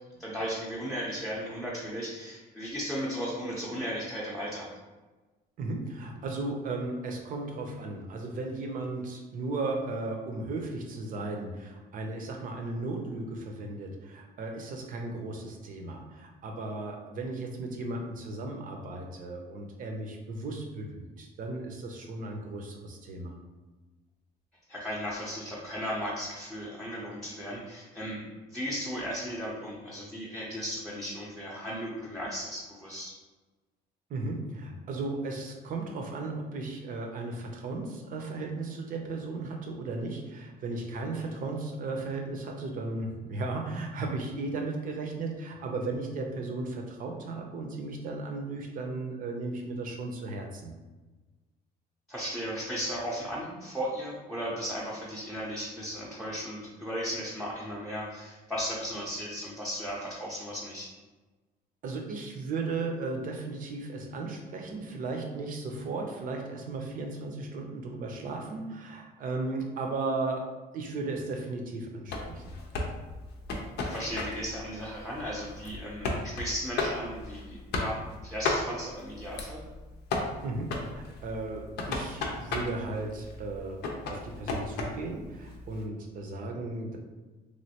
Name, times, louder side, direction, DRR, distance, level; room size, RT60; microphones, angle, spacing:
voice 1, 0.1-4.7 24.7-28.2 28.5-33.1 52.1-60.9 73.8-79.6, equal, ahead, -5 dB, 0.6 m, -36 dB
voice 2, 5.6-23.3 34.1-50.7 61.8-70.5 70.7-72.5 80.4-87.0, right 3 dB, 55° right, 3 dB, 0.6 m, -35 dB
sound 1, 72.1-85.8, left 3 dB, 75° left, 0.6 m, -35 dB
3.1 x 2.5 x 2.8 m, 1.2 s
cardioid pair, 110°, 17 cm